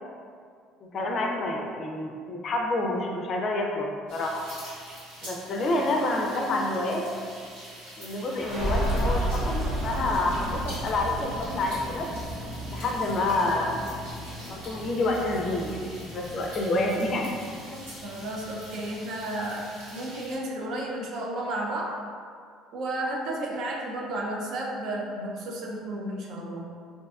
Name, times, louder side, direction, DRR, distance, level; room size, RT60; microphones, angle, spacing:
voice 1, 0.9-4.4 5.2-7.1 8.0-12.1 12.7-13.8 14.5-17.3 17.7-17.8, left 2 dB, 45° left, 1 dB, 0.4 m, -28 dB
sound 1, 4.1-20.4, right 1 dB, 90° right, 1.3 m, -45 dB
sound 2, 8.2-19.5, right 1 dB, 50° right, 0.9 m, -33 dB
voice 2, 18.0-22.0 22.7-26.6, right 1 dB, 65° right, -1 dB, 0.4 m, -32 dB
2.6 x 2.2 x 2.3 m, 2.2 s
supercardioid pair, 100°, 0 cm